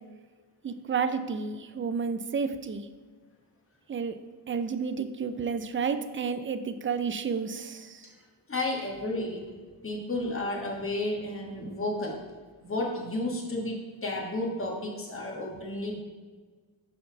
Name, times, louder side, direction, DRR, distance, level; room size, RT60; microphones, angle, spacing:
voice 1, 0.6-2.9 3.9-4.2 4.5-8.1, right 5 dB, 30° right, 9 dB, 0.4 m, -31 dB
voice 2, 8.5-9.4 9.8-12.2 12.6-16.0, left 1 dB, 30° left, -1 dB, 1.4 m, -32 dB
5.8 x 4.1 x 5.7 m, 1.4 s
wide cardioid pair, 135°, 41 cm